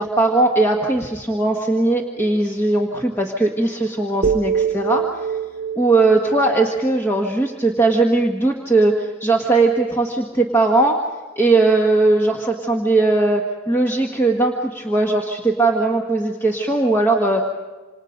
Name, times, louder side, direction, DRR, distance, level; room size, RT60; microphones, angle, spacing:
voice 1, 0.0-5.3 5.7-11.0 11.3-17.4, right 2 dB, 10° left, 0 dB, 1.6 m, -19 dB
sound 1, 4.2-8.3, right 7 dB, 35° right, 0.6 m, -26 dB
27.5 x 27.5 x 5.3 m, 1.4 s
head